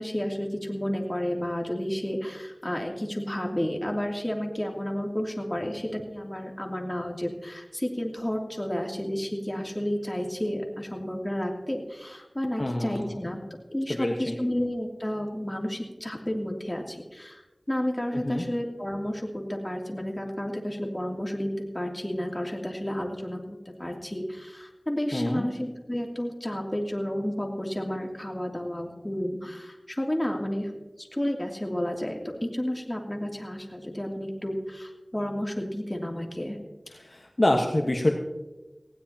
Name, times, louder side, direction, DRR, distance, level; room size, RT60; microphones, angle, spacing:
voice 1, 0.0-13.4 13.7-17.4 17.7-30.7 31.0-36.6, equal, 20° left, 1 dB, 2.9 m, -31 dB
voice 2, 12.6-13.2 13.9-14.3 18.1-18.4 25.1-25.5 36.9-38.1, left 1 dB, 50° left, 1 dB, 1.4 m, -26 dB
19.5 x 16.5 x 2.9 m, 1.1 s
wide cardioid pair, 45°, 0 cm